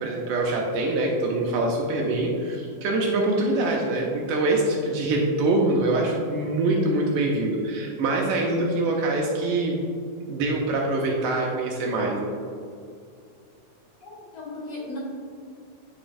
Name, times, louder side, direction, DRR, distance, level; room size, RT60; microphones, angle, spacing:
voice 1, 0.0-9.8 10.3-12.3, right 2 dB, 80° right, -1 dB, 2.1 m, -24 dB
voice 2, 14.0-15.0, left 2 dB, 55° left, -5 dB, 2.3 m, -36 dB
10.5 x 4.8 x 2.5 m, 2.4 s
omnidirectional pair, 4.2 m